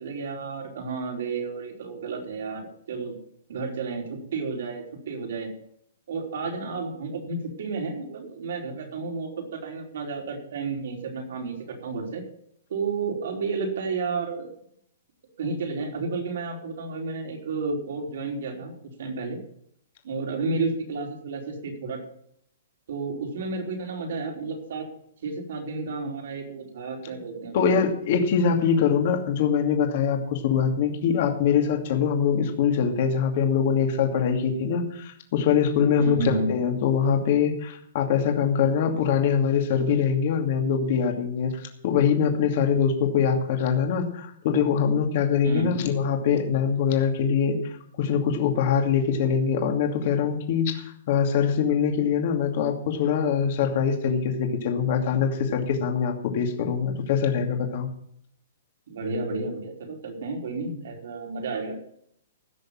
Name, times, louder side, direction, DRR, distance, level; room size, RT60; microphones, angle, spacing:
voice 1, 0.0-3.1 3.5-5.5 6.1-12.2 12.7-14.5 15.4-18.7 19.0-19.4 20.0-22.0 22.9-24.8 25.2-27.8 36.0-36.5 45.4-45.7 58.9-61.8, right 4 dB, 65° right, 1 dB, 4.6 m, -31 dB
voice 2, 27.5-47.6 48.0-57.9, left 7 dB, 45° left, 4 dB, 2.5 m, -23 dB
16.0 x 6.6 x 7.6 m, 0.69 s
hypercardioid pair, 165°, 0 cm